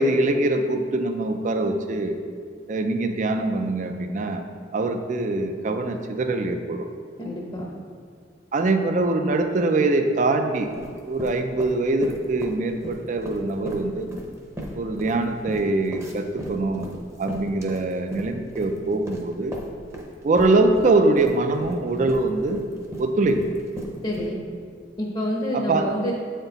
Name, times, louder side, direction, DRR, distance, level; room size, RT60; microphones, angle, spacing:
voice 1, 0.0-2.2 2.7-4.4 4.7-6.9 8.5-10.7 11.0-14.1 14.7-16.9 17.2-19.5 20.2-22.6 23.0-23.4 25.5-25.9, right 2 dB, 45° right, 6 dB, 0.4 m, -23 dB
voice 2, 7.2-7.7 24.0-24.4 25.0-26.1, left 1 dB, 30° left, -2 dB, 0.7 m, -27 dB
sound 1, 10.6-12.6 12.8-20.1 20.4-24.3, equal, 15° right, 0.7 m, -36 dB
7.9 x 4.3 x 3.9 m, 2.1 s
head